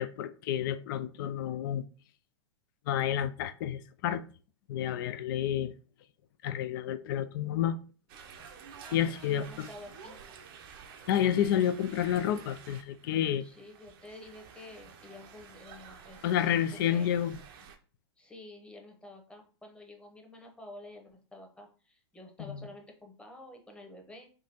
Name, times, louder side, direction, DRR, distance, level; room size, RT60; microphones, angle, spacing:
voice 1, 0.0-1.8 2.9-4.2 4.7-5.7 6.4-7.8 8.9-9.7 11.1-13.4 16.2-17.4 22.4-22.7, left 10 dB, 50° left, 0.4 m, -30 dB
sound 1, 8.1-17.8, right 6 dB, 55° right, 0.6 m, -51 dB
voice 2, 9.2-10.2 13.4-16.6 16.9-17.1 18.2-24.3, left 2 dB, 5° left, 0.9 m, -50 dB
3.6 x 2.6 x 2.9 m
hypercardioid pair, 105°, 14 cm